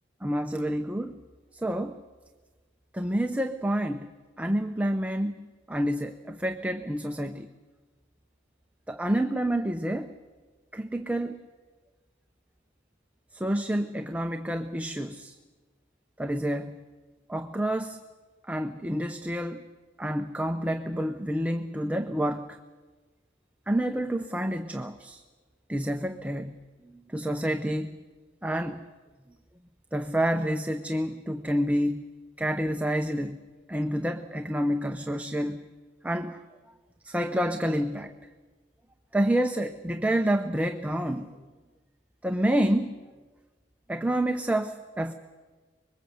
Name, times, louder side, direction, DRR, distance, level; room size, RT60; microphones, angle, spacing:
voice 1, 0.2-1.1 1.5-1.9 2.9-4.1 4.4-5.3 5.7-7.5 8.9-10.1 10.7-11.4 13.3-15.4 16.2-16.7 17.3-18.0 18.5-19.6 20.0-22.6 23.7-25.2 25.7-26.5 27.1-27.9 28.4-28.8 29.9-32.0 32.4-33.4 33.7-35.6 36.0-36.4 37.0-38.1 39.1-41.3 42.2-43.0 43.9-45.1, right 1 dB, 10° right, 7 dB, 0.7 m, -28 dB
25.0 x 22.0 x 8.0 m, 1.3 s
head